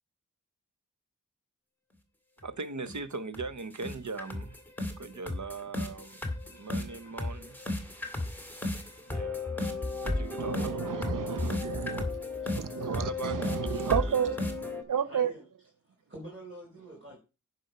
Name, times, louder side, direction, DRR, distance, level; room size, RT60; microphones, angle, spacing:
sound 1, 2.4-2.5 2.9-3.0 3.3-3.5 3.8-14.8, left 2 dB, 5° left, 2.1 m, -34 dB
voice 1, 2.4-4.6 5.0-7.6 9.1-11.1 12.8-13.6, right 4 dB, 65° right, 0.9 m, -40 dB
voice 2, 10.4-12.0 12.6-14.5 14.9-15.3, right 8 dB, 85° right, 0.5 m, -31 dB
voice 3, 12.5-12.9 14.9-15.5 15.8-17.2, right 1 dB, 40° right, 4.6 m, -48 dB
10.5 x 5.4 x 5.5 m
wide cardioid pair, 40°, 31 cm